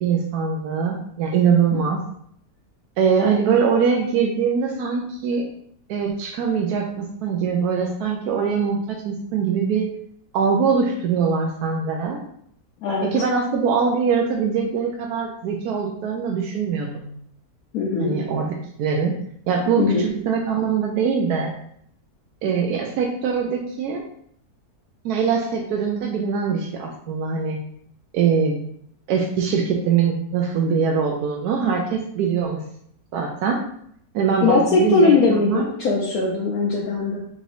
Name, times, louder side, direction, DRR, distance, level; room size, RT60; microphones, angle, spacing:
voice 1, 0.0-2.0 3.0-5.4 5.9-9.9 10.3-12.2 13.0-17.1 18.0-19.1 19.5-21.5 22.4-24.0 25.0-27.6 28.1-28.6 29.1-32.6 33.1-33.6 34.1-35.7, right 6 dB, 85° right, 0 dB, 1.1 m, -22 dB
voice 2, 12.8-13.1 17.7-18.2 19.8-20.1 34.4-37.2, left 4 dB, 70° left, -2 dB, 1.1 m, -20 dB
4.8 x 3.9 x 2.6 m, 0.67 s
omnidirectional pair, 1.6 m